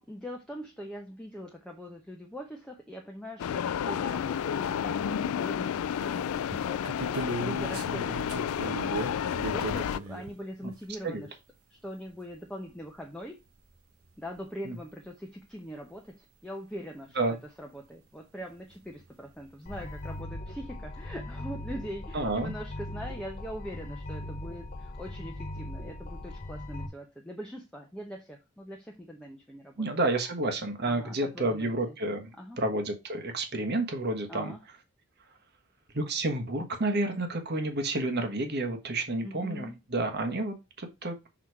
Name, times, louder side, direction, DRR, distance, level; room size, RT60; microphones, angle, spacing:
voice 1, 0.0-8.9 9.3-11.4 11.7-13.4 14.2-29.8 30.8-31.7 32.4-32.6 34.3-34.6 39.2-39.7, equal, 5° left, 0.8 m, -42 dB
sound 1, 3.4-10.0, left 8 dB, 70° left, 0.3 m, -31 dB
sound 2, 4.1-4.2 4.6-5.6 6.0-10.3 13.0-13.1 13.2-13.3 14.4-14.5 15.0-15.1 18.7-18.8 19.0-19.4, right 2 dB, 80° right, 1.1 m, -38 dB
sound 3, 19.7-26.9, left 1 dB, 35° left, 0.7 m, -39 dB
voice 2, 22.1-22.5 29.8-34.5 35.9-41.1, right 2 dB, 45° right, 1.3 m, -30 dB
6.2 x 4.1 x 4.7 m
head